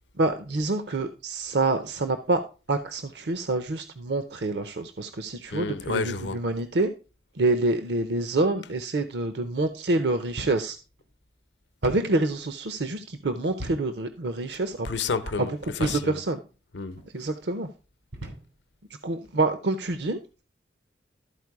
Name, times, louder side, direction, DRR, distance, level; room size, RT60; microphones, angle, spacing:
voice 1, 0.2-2.4 2.7-6.9 7.4-10.8 11.8-14.9 15.8-16.4 17.1-17.7 19.0-20.4, right 2 dB, 65° right, 0.7 m, -27 dB
voice 2, 5.5-6.4 14.8-16.2 16.7-17.3, left 4 dB, 70° left, 0.8 m, -31 dB
sound 1, 10.4-10.7 11.0-11.1 11.8-12.1 13.6-13.9 14.6-14.8 15.8-16.1 16.9-17.1 18.1-18.5, right 1 dB, 85° right, 2.6 m, -37 dB
12.5 x 4.6 x 4.7 m
head